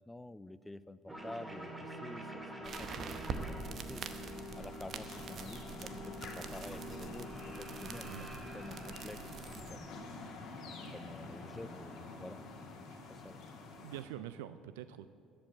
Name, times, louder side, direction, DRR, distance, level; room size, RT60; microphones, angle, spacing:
voice 1, 0.0-4.0 4.6-8.1 8.5-10.0 10.9-12.4 12.8-13.4, left 1 dB, 10° left, 16 dB, 0.4 m, -49 dB
sound 1, 1.1-10.0, equal, 10° right, 1.7 m, -47 dB
sound 2, 2.6-9.8, right 5 dB, 50° right, 0.8 m, -45 dB
sound 3, 4.1-14.0, left 3 dB, 60° left, 2.1 m, -48 dB
voice 2, 13.8-15.1, right 12 dB, 90° right, 13 dB, 0.3 m, -46 dB
13.5 x 5.3 x 8.2 m, 2.4 s
supercardioid pair, 80°, 0 cm